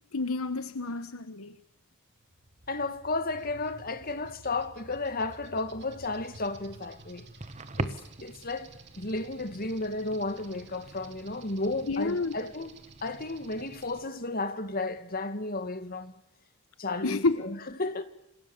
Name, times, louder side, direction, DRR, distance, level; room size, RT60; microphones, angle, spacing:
voice 1, 0.1-1.6 11.9-12.3 17.0-17.5, left 3 dB, 75° left, 1.1 m, -29 dB
sound 1, 2.2-14.0, right 3 dB, 50° right, 2.7 m, -53 dB
voice 2, 2.7-7.3 7.8-8.7 9.0-16.1 16.8-18.0, left 2 dB, 40° left, 2.1 m, -33 dB
sound 2, 5.9-14.1, right 2 dB, 30° right, 1.4 m, -43 dB
28.0 x 27.5 x 7.3 m
head